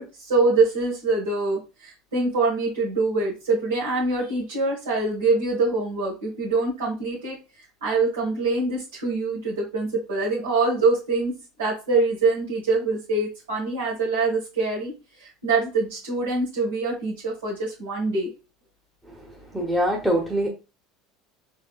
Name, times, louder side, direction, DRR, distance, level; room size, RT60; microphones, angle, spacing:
voice 1, 0.0-7.4 7.8-11.3 11.6-14.9 15.2-18.3, right 3 dB, 90° right, -4 dB, 1.4 m, -24 dB
voice 2, 19.1-20.5, equal, 5° right, 0 dB, 0.8 m, -25 dB
3.5 x 3.3 x 2.3 m, 0.30 s
hypercardioid pair, 90°, 0 cm